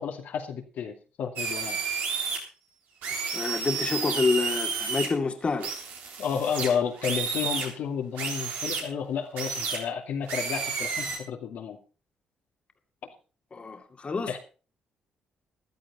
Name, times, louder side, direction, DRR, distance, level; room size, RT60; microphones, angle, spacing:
voice 1, 0.0-1.8 6.2-11.8 14.3-14.4, left 7 dB, 75° left, 2.6 m, -31 dB
sound 1, 1.4-2.4 3.0-5.1 5.6-7.7 8.2-8.8 9.4-9.8 10.3-11.2, right 5 dB, 80° right, 3.9 m, -31 dB
voice 2, 3.3-5.7 13.5-14.4, left 4 dB, 40° left, 2.3 m, -28 dB
15.0 x 12.0 x 4.3 m
supercardioid pair, 55°, 3 cm